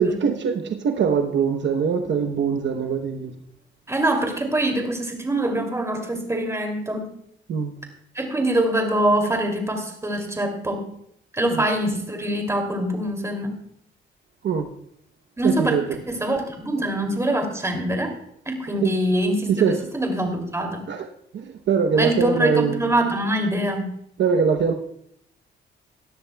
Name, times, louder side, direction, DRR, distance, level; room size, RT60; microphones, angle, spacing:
voice 1, 0.0-3.3 7.5-7.8 11.5-11.7 14.4-14.7 15.4-16.0 18.8-18.9 19.5-19.8 20.9-21.1 21.3-22.8 24.2-24.7, right 6 dB, 65° right, 5 dB, 0.9 m, -22 dB
voice 2, 3.9-7.1 8.1-10.8 11.3-13.5 15.4-15.8 16.1-18.1 18.5-19.7 19.9-20.9 21.9-23.9, right 1 dB, 15° right, 3 dB, 2.7 m, -24 dB
18.5 x 12.5 x 2.3 m, 0.71 s
cardioid pair, 100°, 20 cm